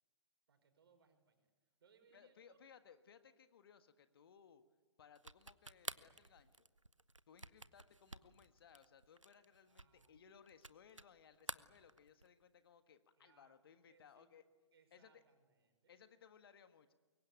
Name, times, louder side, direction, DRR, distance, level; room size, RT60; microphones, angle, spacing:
voice 1, 0.5-1.5 1.8-2.6 9.6-10.3 13.2-13.6 13.9-14.3 14.7-15.9, right 6 dB, 50° right, 6 dB, 5.8 m, -72 dB
voice 2, 2.1-4.6 5.0-6.6 7.3-14.4 14.9-15.2 15.9-16.9, left 7 dB, 50° left, 10 dB, 1.6 m, -64 dB
sound 1, 5.2-11.1 11.4-12.4, right 3 dB, 85° right, 0.9 m, -51 dB
24.5 x 23.0 x 9.3 m, 1.3 s
figure-of-eight pair, 120°, 16 cm